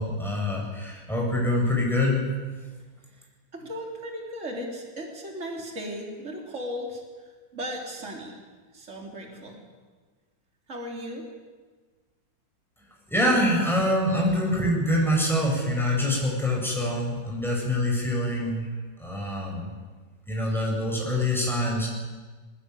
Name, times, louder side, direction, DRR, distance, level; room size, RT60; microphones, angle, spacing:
voice 1, 0.0-2.2 13.1-18.7 19.0-19.7 20.3-21.9, left 1 dB, ahead, -2 dB, 7.9 m, -25 dB
voice 2, 3.5-7.0 7.5-8.4 8.7-9.6 10.7-11.3, equal, 40° right, 0 dB, 3.9 m, -36 dB
21.5 x 21.0 x 9.8 m, 1.4 s
omnidirectional pair, 2.0 m